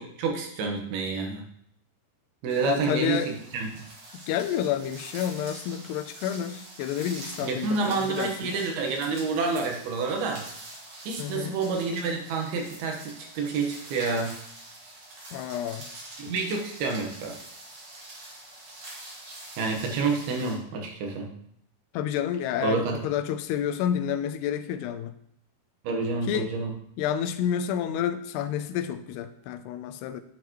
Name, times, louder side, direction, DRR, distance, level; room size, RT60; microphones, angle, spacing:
voice 1, 0.0-1.4 2.4-3.7 7.4-10.5 11.0-14.3 16.2-17.4 19.6-21.3 22.6-23.0 25.8-26.7, right 4 dB, 75° right, 2 dB, 3.1 m, -28 dB
sound 1, 2.5-20.5, right 2 dB, 45° right, 2.4 m, -45 dB
voice 2, 2.6-3.3 4.1-8.5 11.2-11.6 15.3-15.9 16.2-16.3 21.9-25.2 26.3-26.5 27.0-30.2, left 9 dB, 85° left, 10 dB, 2.8 m, -29 dB
9.6 x 8.5 x 3.1 m, 0.69 s
omnidirectional pair, 4.7 m